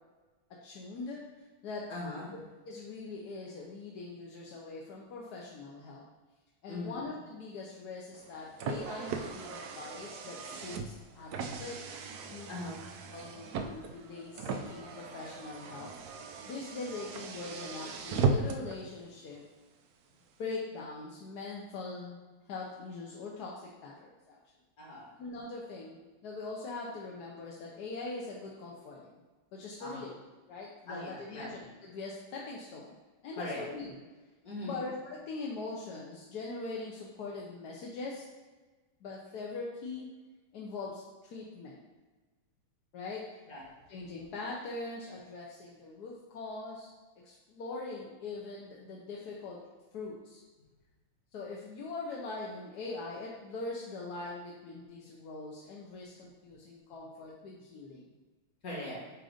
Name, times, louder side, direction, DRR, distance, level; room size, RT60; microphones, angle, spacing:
voice 1, 0.6-1.2 1.6-1.9 2.3-2.4 2.6-6.0 6.6-11.8 12.3-12.7 13.1-15.9 16.4-19.4 20.4-22.2 22.5-24.4 25.2-29.2 29.5-30.1 30.5-33.0 33.2-34.0 34.6-38.3 39.0-40.1 40.5-41.8 42.9-43.4 43.9-46.9 47.2-49.6 49.9-50.4 51.3-58.1, left 3 dB, 65° left, -3 dB, 1.1 m, -42 dB
voice 2, 1.9-2.3 6.7-7.0 12.5-12.8 24.8-25.1 29.8-30.0 30.9-31.5 33.4-33.6 34.4-34.8 43.5-43.6 50.6-50.7 58.6-59.0, left 1 dB, 45° left, -4 dB, 2.0 m, -40 dB
Car, 8.1-18.8, right 4 dB, 80° right, 0.8 m, -37 dB
7.6 x 2.6 x 5.0 m, 1.3 s
omnidirectional pair, 2.2 m